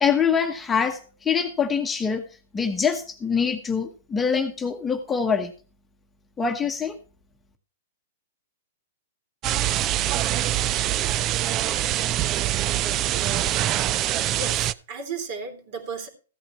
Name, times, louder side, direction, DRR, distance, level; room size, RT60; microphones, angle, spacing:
voice 1, 0.0-2.2 2.5-5.5 6.4-7.0, left 6 dB, 10° left, 5 dB, 1.1 m, -24 dB
sound 1, 9.4-14.7, right 13 dB, 30° right, 0.4 m, -24 dB
voice 2, 14.0-16.1, right 4 dB, 45° right, 6 dB, 3.2 m, -35 dB
15.0 x 8.8 x 3.1 m, 0.36 s
hypercardioid pair, 145°, 0 cm